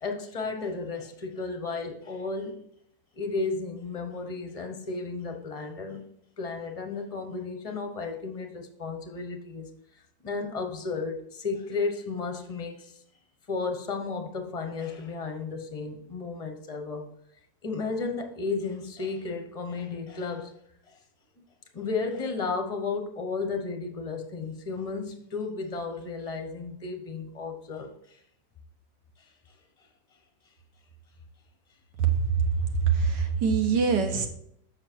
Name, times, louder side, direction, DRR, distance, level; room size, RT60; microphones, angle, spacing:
voice 1, 0.0-2.6 3.2-6.0 6.4-9.7 10.2-13.0 13.5-17.1 17.6-20.5 20.9-21.0 21.7-28.2, left 4 dB, 25° left, 5 dB, 0.8 m, -33 dB
voice 2, 32.0-32.3 32.8-34.3, right 6 dB, 65° right, 5 dB, 1.7 m, -24 dB
7.7 x 6.3 x 4.5 m, 0.70 s
omnidirectional pair, 2.1 m